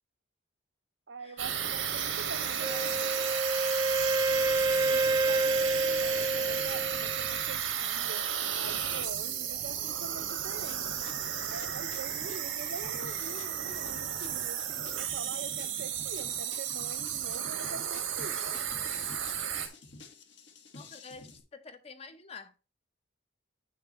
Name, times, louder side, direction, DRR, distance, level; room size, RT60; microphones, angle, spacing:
voice 1, 1.1-3.2 4.9-8.3 8.5-11.2 11.5-19.1, right 4 dB, 65° right, 0.8 m, -45 dB
sound 1, 1.4-19.7, right 9 dB, 85° right, 1.7 m, -33 dB
voice 2, 2.4-3.2 6.1-6.3 20.7-22.6, left 4 dB, 30° left, 0.8 m, -48 dB
Wind instrument woodwind instrument, 2.6-7.5, right 2 dB, 20° right, 0.3 m, -29 dB
sound 2, 10.6-21.4, left 3 dB, 65° left, 1.5 m, -51 dB
8.6 x 6.7 x 3.0 m
head